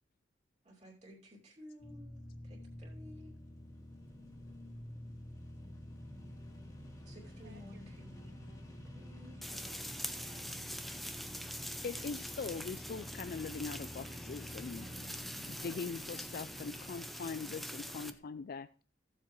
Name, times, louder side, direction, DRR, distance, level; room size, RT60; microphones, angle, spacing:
voice 1, 0.8-3.4 7.0-8.4 8.8-9.4 14.7-15.5, equal, 35° right, 2.6 m, -55 dB
sound 1, 1.8-18.1, left 1 dB, 20° left, 1.9 m, -49 dB
voice 2, 7.0-8.6 9.2-10.6 15.6-16.2, right 4 dB, 55° right, 1.0 m, -63 dB
sound 2, 9.4-18.1, equal, ahead, 0.6 m, -44 dB
voice 3, 11.8-14.9 15.4-18.8, left 5 dB, 50° left, 0.4 m, -42 dB
15.0 x 7.4 x 3.1 m
head